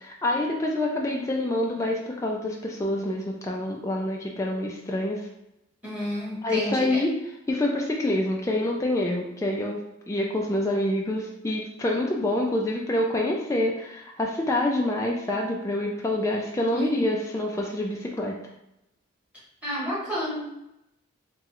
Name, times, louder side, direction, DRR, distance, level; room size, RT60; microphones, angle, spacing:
voice 1, 0.0-5.2 6.4-7.2 7.5-9.8 10.1-18.3, left 1 dB, 15° left, -1 dB, 0.3 m, -26 dB
voice 2, 5.8-7.0 16.7-17.1 19.6-20.5, equal, 5° right, -8 dB, 1.2 m, -30 dB
3.6 x 3.0 x 2.9 m, 0.84 s
head